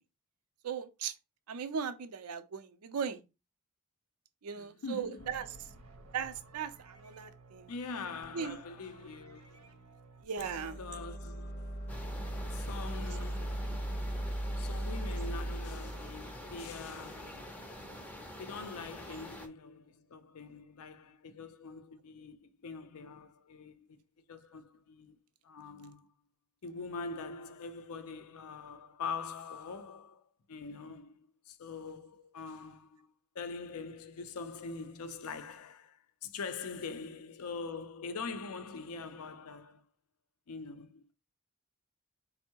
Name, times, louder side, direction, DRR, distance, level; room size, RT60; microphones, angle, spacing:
voice 1, 0.6-1.1 1.5-3.2 4.4-5.5 6.1-7.7 8.3-8.6 10.2-10.8, right 7 dB, 85° right, 0.5 m, -38 dB
voice 2, 4.6-5.4 7.7-10.0 10.8-11.8 12.5-13.9 14.6-17.6 18.4-24.0 24.3-25.1 25.4-26.1 26.6-39.8 40.5-41.1, left 4 dB, 80° left, 0.5 m, -44 dB
sound 1, 5.2-10.3, right 3 dB, 65° right, 0.9 m, -55 dB
sound 2, 10.4-17.4, right 1 dB, 35° left, 0.7 m, -38 dB
sound 3, 11.9-19.5, equal, 5° left, 0.5 m, -46 dB
4.4 x 2.0 x 4.4 m
head